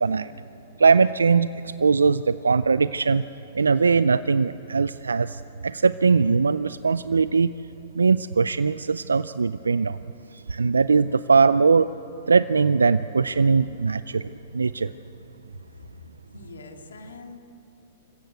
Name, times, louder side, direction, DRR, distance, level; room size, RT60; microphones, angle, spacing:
voice 1, 0.8-3.2 3.5-7.5 8.0-10.0 10.3-11.9 12.3-14.9, right 5 dB, 90° right, 15 dB, 0.4 m, -21 dB
voice 2, 15.7-17.4, left 3 dB, 80° left, 4 dB, 2.4 m, -44 dB
25.5 x 15.5 x 8.1 m, 3.0 s
hypercardioid pair, 115°, 0 cm